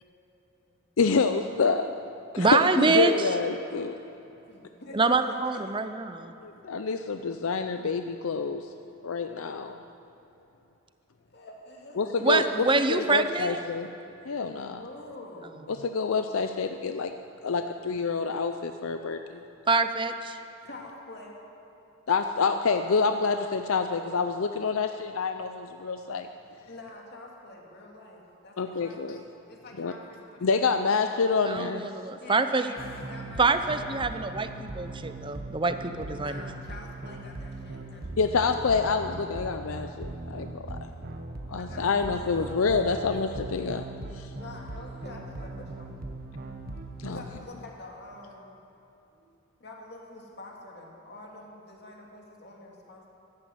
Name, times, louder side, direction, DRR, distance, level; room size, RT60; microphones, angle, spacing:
voice 1, 1.0-1.9 2.3-4.0 6.4-8.7 9.0-9.8 12.0-12.4 12.9-13.9 14.3-14.8 15.7-17.1 17.4-19.2 22.1-26.3 28.6-29.2 29.8-29.9 30.4-31.9 38.2-40.8 41.5-43.8 44.1-44.3 47.0-47.2, left 4 dB, 70° left, 7 dB, 0.5 m, -27 dB
voice 2, 2.4-3.1 4.9-6.3 12.2-13.6 19.7-20.4 31.4-32.8 33.4-36.4, right 3 dB, 20° right, 10 dB, 0.6 m, -25 dB
voice 3, 4.2-5.8 6.5-6.6 9.0-9.1 11.3-12.1 14.2-15.7 20.5-21.4 26.7-30.5 30.7-31.0 32.2-34.6 36.1-38.3 38.6-38.7 41.5-43.6 44.4-45.9 47.1-48.6 49.1-49.3 49.6-53.1, left 2 dB, 50° left, -1 dB, 2.4 m, -47 dB
sound 1, 32.8-47.4, right 2 dB, 45° right, 1.0 m, -40 dB
14.5 x 12.0 x 7.9 m, 2.9 s
head